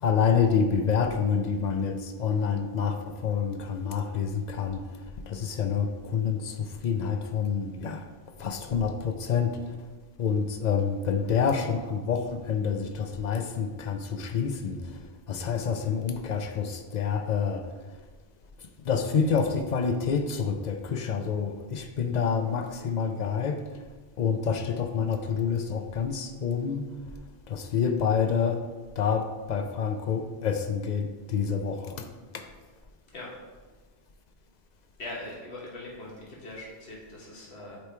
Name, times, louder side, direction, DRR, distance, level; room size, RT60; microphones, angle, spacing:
voice 1, 0.0-4.8 5.3-8.0 8.4-9.8 10.2-14.9 15.3-17.7 18.8-23.6 24.2-26.9 27.5-28.6 29.0-32.1 32.3-32.4, left 6 dB, 50° left, 6 dB, 0.6 m, -27 dB
voice 2, 35.0-37.8, left 2 dB, 85° left, -4 dB, 1.5 m, -41 dB
8.2 x 3.1 x 4.4 m, 1.3 s
omnidirectional pair, 1.1 m